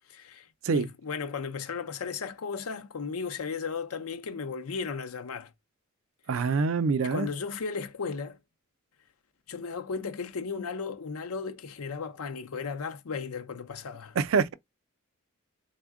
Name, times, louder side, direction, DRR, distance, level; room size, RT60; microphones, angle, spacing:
voice 1, 0.1-5.5 7.0-8.4 9.5-14.2, left 5 dB, 85° left, 0.6 m, -35 dB
voice 2, 6.3-7.3 14.2-14.5, right 5 dB, 65° right, 0.4 m, -25 dB
3.5 x 2.1 x 3.4 m
head